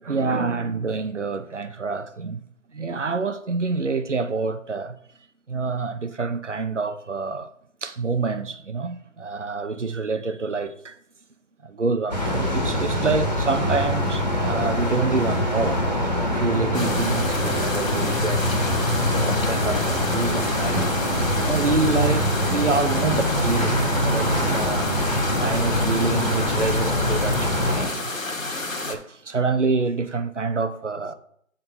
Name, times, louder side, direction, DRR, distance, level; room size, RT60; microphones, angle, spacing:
voice 1, 0.0-2.4 2.7-5.0 5.5-7.5 7.8-11.0 11.6-18.6 19.2-20.9 21.4-25.0 25.4-28.1 28.9-31.1, right 4 dB, 60° right, 0.8 m, -27 dB
sound 1, 12.1-27.9, left 1 dB, 30° left, 1.4 m, -24 dB
sound 2, 16.7-28.9, left 2 dB, 70° left, 1.5 m, -31 dB
7.9 x 3.9 x 5.4 m
figure-of-eight pair, 170°, 41 cm